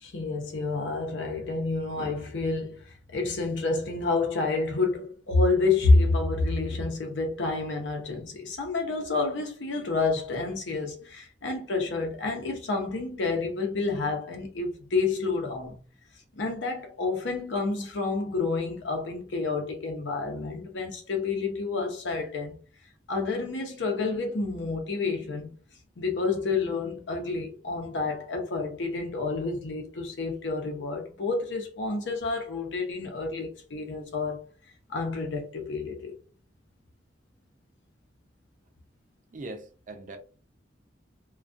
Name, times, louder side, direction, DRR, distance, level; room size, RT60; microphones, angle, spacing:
voice 1, 0.0-2.8 3.1-15.8 16.4-22.5 23.1-25.5 26.0-34.4 34.9-36.1, left 3 dB, 90° left, 0.7 m, -29 dB
voice 2, 39.3-40.2, right 2 dB, 45° right, 0.4 m, -41 dB
2.3 x 2.3 x 2.5 m
head